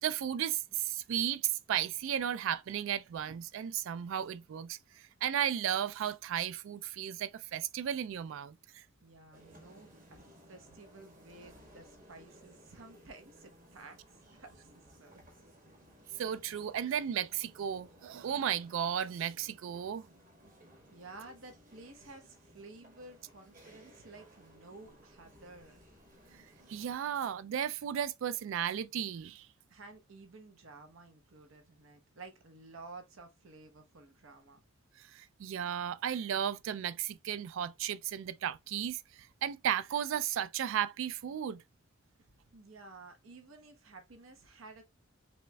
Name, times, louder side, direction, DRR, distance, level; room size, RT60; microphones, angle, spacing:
voice 1, 0.0-8.8 16.2-20.1 26.7-29.5 35.0-41.6, right 9 dB, 70° right, 0.3 m, -34 dB
voice 2, 9.0-15.2 20.9-25.8 29.7-34.6 42.2-44.8, right 3 dB, 85° right, 0.9 m, -53 dB
sound 1, 9.3-27.0, equal, 45° right, 1.3 m, -59 dB
4.2 x 3.1 x 2.2 m
head